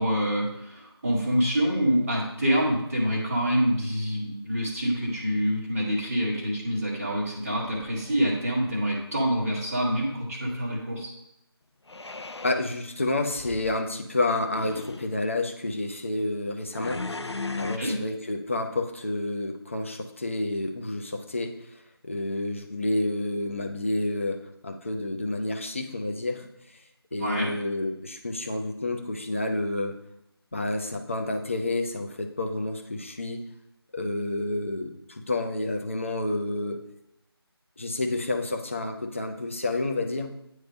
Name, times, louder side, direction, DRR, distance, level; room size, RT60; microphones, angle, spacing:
voice 1, 0.0-11.1 17.8-17.9 27.2-27.5, equal, 5° right, -13 dB, 0.6 m, -26 dB
sound 1, 7.6-8.5 11.9-12.6 13.3-13.8 14.4-15.1 16.7-17.8, left 3 dB, 90° left, 0.5 m, -36 dB
voice 2, 12.4-17.0 17.6-21.5 22.0-26.5 27.1-29.9 30.5-33.4 33.9-36.8 37.8-40.3, left 2 dB, 30° left, 3 dB, 0.7 m, -29 dB
9.3 x 3.3 x 5.2 m, 0.82 s
figure-of-eight pair, 165°, 14 cm